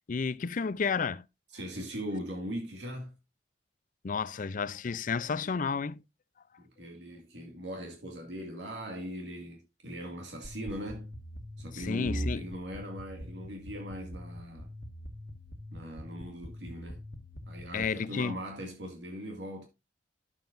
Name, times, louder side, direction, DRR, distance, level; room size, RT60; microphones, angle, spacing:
voice 1, 0.1-1.3 4.0-6.0 11.7-12.4 17.7-18.4, left 5 dB, 50° left, 0.5 m, -31 dB
voice 2, 1.5-3.2 6.6-11.1 11.6-14.7 15.7-17.0 17.5-19.7, equal, 80° right, 2.1 m, -40 dB
sound 1, 10.4-17.8, equal, 70° left, 1.8 m, -42 dB
11.0 x 7.4 x 2.5 m
head